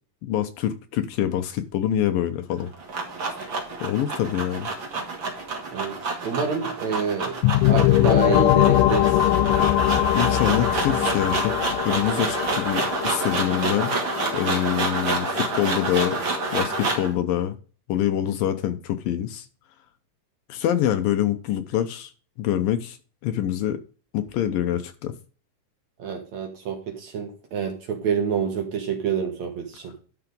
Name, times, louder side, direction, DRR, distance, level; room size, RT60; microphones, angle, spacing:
voice 1, 0.2-2.7 3.8-4.7 10.1-11.5 11.8-13.9 14.3-16.2 16.5-17.6 17.9-19.5 20.5-22.1 22.4-23.0 23.2-23.8 24.1-25.1, left 11 dB, 75° left, 2.4 m, -25 dB
sound 1, 2.5-17.1, right 3 dB, 35° right, 2.5 m, -28 dB
voice 2, 6.2-7.4 7.6-9.4 26.0-29.9, right 6 dB, 55° right, 2.4 m, -28 dB
sound 2, 7.4-17.0, left 14 dB, 90° left, 1.9 m, -23 dB
12.0 x 4.9 x 5.1 m
omnidirectional pair, 4.5 m